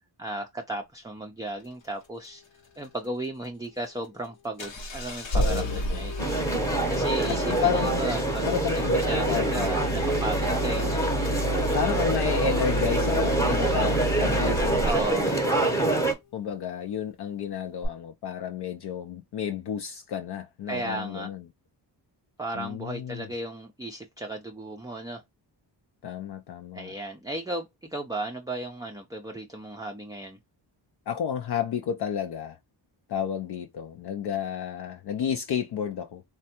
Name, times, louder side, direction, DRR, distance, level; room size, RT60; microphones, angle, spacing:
voice 1, 0.2-2.4 2.8-6.1 6.9-11.0 14.8-15.3 20.7-21.3 22.4-25.2 26.7-30.4, right 2 dB, 10° right, 0.4 m, -35 dB
Engine starting, 4.6-15.2 17.8-17.9, equal, 85° left, 1.0 m, -30 dB
voice 2, 5.3-6.0 7.4-8.1 8.4-9.9 10.5-10.6 11.7-15.6 16.3-21.5 22.5-23.3 26.0-26.9 31.1-32.6 33.1-36.2, left 8 dB, 60° left, 0.5 m, -31 dB
sound 1, 6.2-16.1, right 2 dB, 5° left, 0.8 m, -26 dB
3.3 x 2.2 x 2.8 m
cardioid pair, 75°, 45 cm